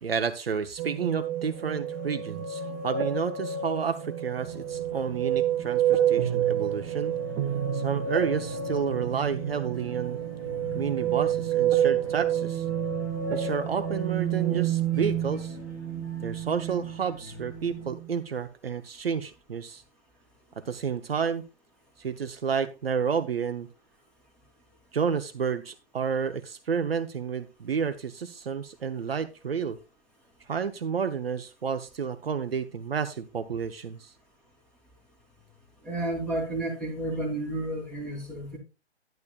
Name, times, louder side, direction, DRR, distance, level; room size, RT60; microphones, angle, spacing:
voice 1, 0.0-7.1 7.7-10.2 10.7-12.6 13.3-15.6 16.2-19.8 20.7-21.4 22.0-23.7 24.9-29.8 30.5-34.1, right 6 dB, 60° right, 10 dB, 0.9 m, -30 dB
sound 1, 0.8-17.0 17.4-18.1, right 9 dB, 15° right, 1.1 m, -29 dB
sound 2, 4.4-17.9, left 2 dB, 80° left, 4.6 m, -46 dB
voice 2, 35.8-38.6, right 1 dB, 5° left, -2 dB, 3.1 m, -31 dB
10.5 x 10.5 x 2.4 m, 0.29 s
figure-of-eight pair, 135°, 33 cm